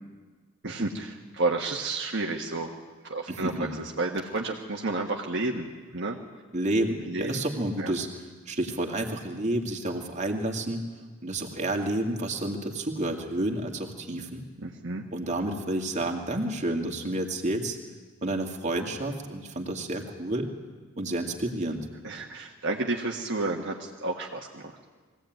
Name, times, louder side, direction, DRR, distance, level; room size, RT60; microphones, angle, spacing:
voice 1, 0.6-2.7 3.0-6.2 7.1-7.4 7.8-7.9 14.6-15.0 22.0-24.7, right 2 dB, 55° right, 0 dB, 1.5 m, -31 dB
voice 2, 3.3-3.8 6.5-10.8 11.2-14.4 15.1-17.8 18.2-20.5 21.0-21.9, right 1 dB, 35° right, 2 dB, 2.2 m, -30 dB
22.0 x 16.5 x 9.3 m, 1.4 s
head